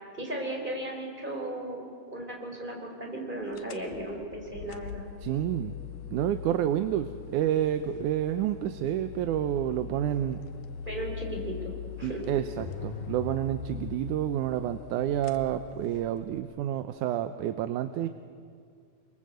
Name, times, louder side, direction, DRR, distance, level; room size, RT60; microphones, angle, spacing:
voice 1, 0.2-5.1 10.9-11.7 12.0-12.2, right 1 dB, 15° right, 0 dB, 4.5 m, -36 dB
sound 1, 3.5-16.4, left 7 dB, 85° left, 2.8 m, -41 dB
voice 2, 5.2-5.7 6.1-10.4 12.0-18.1, right 11 dB, 75° right, 9 dB, 2.1 m, -29 dB
28.0 x 23.5 x 7.8 m, 2.3 s
omnidirectional pair, 3.9 m